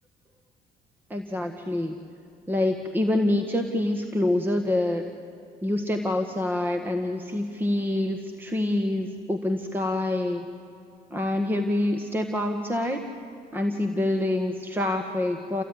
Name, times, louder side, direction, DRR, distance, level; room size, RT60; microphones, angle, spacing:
voice 1, 1.1-2.0 2.5-5.1 5.6-10.5 11.1-13.1 13.5-15.6, left 1 dB, 10° right, 5 dB, 1.5 m, -26 dB
28.5 x 16.0 x 9.9 m, 2.6 s
cardioid pair, 110°, 17 cm